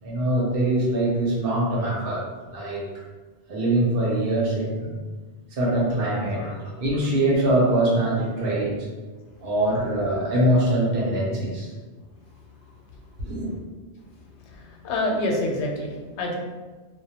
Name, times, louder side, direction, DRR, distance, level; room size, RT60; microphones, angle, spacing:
voice 1, 0.0-2.2 2.5-2.8 3.5-4.9 5.5-8.8 9.4-11.7 13.2-13.5, right 1 dB, 60° right, -4 dB, 0.8 m, -23 dB
voice 2, 6.1-6.5 9.3-9.4 12.0-13.2 13.5-13.7 14.0-16.4, left 1 dB, 85° left, 0 dB, 0.9 m, -30 dB
2.2 x 2.1 x 2.8 m, 1.3 s
omnidirectional pair, 1.1 m